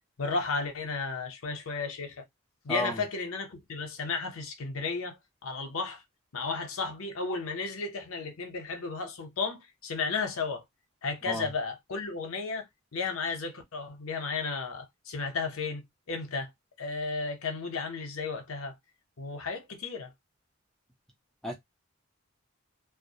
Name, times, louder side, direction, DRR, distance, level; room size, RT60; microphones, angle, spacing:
voice 1, 0.2-2.3 2.6-6.0 6.3-10.6 11.0-12.7 12.9-16.5 16.8-18.7 19.2-20.1, left 4 dB, 75° left, 0.6 m, -34 dB
voice 2, 2.7-3.0 11.3-11.5 21.4-21.5, equal, 5° left, 0.4 m, -32 dB
2.2 x 2.1 x 2.7 m
head